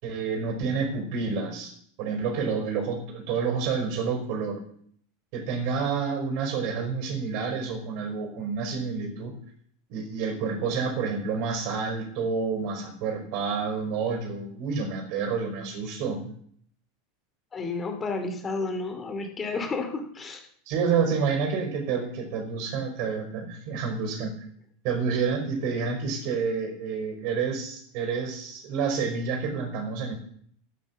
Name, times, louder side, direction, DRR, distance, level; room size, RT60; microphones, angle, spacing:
voice 1, 0.0-1.7 2.0-4.6 5.3-9.3 9.9-16.2 20.7-24.4 24.8-30.1, right 5 dB, 55° right, 5 dB, 5.2 m, -29 dB
voice 2, 17.5-20.4, left 3 dB, 20° left, 6 dB, 2.6 m, -31 dB
12.5 x 11.5 x 7.4 m, 0.62 s
supercardioid pair, 140°, 0 cm